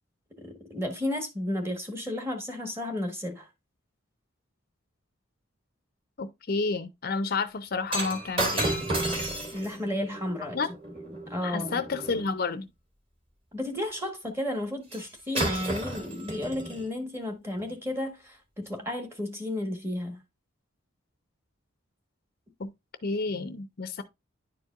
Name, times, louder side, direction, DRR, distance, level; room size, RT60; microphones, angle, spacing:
voice 1, 0.4-3.5 9.5-10.6 10.9-11.8 13.5-20.2, left 1 dB, 10° right, 1.4 m, -33 dB
voice 2, 6.2-8.8 10.5-10.7 11.4-12.7 22.6-22.7 23.0-24.0, left 4 dB, 45° left, 0.5 m, -30 dB
Shatter, 7.9-12.3 14.9-15.1 15.3-16.9 17.6-17.7, right 1 dB, 30° right, 2.3 m, -32 dB
10.5 x 4.6 x 2.4 m
head